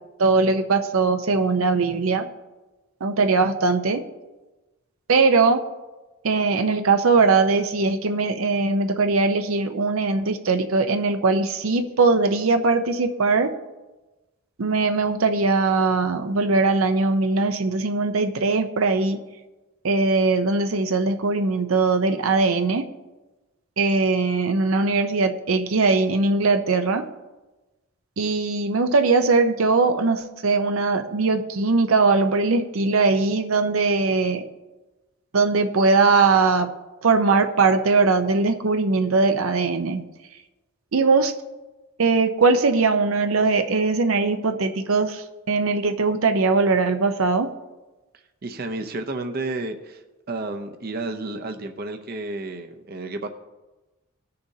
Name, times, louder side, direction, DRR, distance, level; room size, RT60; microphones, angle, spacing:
voice 1, 0.2-2.3 3.0-4.0 5.1-5.6 6.2-13.5 14.6-19.2 19.8-22.8 23.8-27.0 28.2-34.4 35.3-36.7 37.0-40.0 40.9-41.3 42.0-47.5, right 3 dB, 85° right, 7 dB, 0.7 m, -20 dB
voice 2, 48.4-50.0 50.3-53.3, right 2 dB, 50° right, 6 dB, 0.6 m, -31 dB
19.0 x 6.7 x 2.7 m, 1.1 s
head